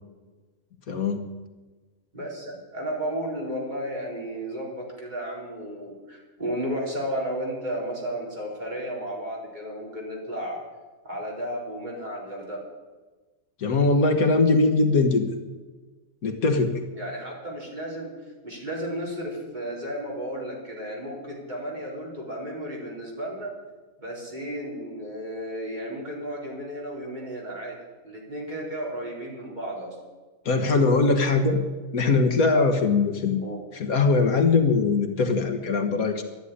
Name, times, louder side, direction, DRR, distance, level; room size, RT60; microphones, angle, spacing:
voice 1, 0.9-1.3 13.6-15.3 16.2-16.7 30.5-31.6 31.9-33.4 33.7-36.2, left 3 dB, 70° left, 6 dB, 1.8 m, -21 dB
voice 2, 2.1-10.6 11.0-12.6 16.9-18.1 18.4-23.5 24.0-27.8 28.0-30.0 33.4-33.6, equal, 30° right, -3 dB, 4.4 m, -33 dB
12.5 x 11.0 x 9.9 m, 1.3 s
omnidirectional pair, 1.6 m